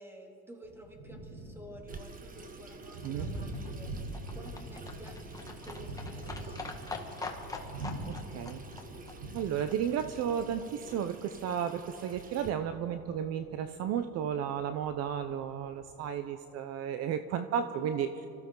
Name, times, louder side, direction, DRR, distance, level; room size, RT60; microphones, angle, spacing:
voice 1, 0.0-3.9 4.3-7.4 17.8-17.9, equal, 5° right, 2 dB, 2.5 m, -51 dB
Thunder, 0.6-15.9, right 2 dB, 80° right, 3.6 m, -44 dB
Water tap faucet / Sink (filling or washing), 1.9-12.5, right 4 dB, 25° right, 1.3 m, -50 dB
Livestock farm animals working animals, 2.4-10.7 10.9-11.0 11.2-11.3 11.5-11.6 11.8-11.9 12.1-12.2 12.5-12.6 12.8-12.9 13.1-13.2, left 3 dB, 10° left, 1.6 m, -45 dB
voice 2, 8.1-8.6 9.3-18.1, right 8 dB, 50° right, 10 dB, 0.8 m, -33 dB
25.0 x 15.0 x 3.9 m, 2.7 s
supercardioid pair, 110°, 32 cm